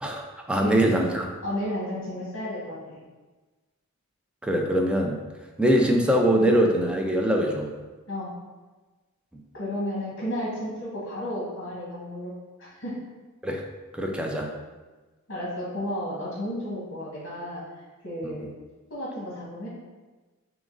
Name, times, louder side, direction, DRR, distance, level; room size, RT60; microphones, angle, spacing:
voice 1, 0.0-1.3 4.4-5.2 5.6-7.7 9.3-9.4 13.4-13.6 13.9-14.5 18.2-18.5, right 1 dB, 5° right, 0 dB, 0.4 m, -23 dB
voice 2, 0.6-0.9 1.4-3.0 8.1-8.3 9.5-12.3 12.6-12.9 15.3-17.6 18.0-18.5 18.9-19.7, equal, 60° left, -7 dB, 1.3 m, -32 dB
3.7 x 3.0 x 3.7 m, 1.3 s
head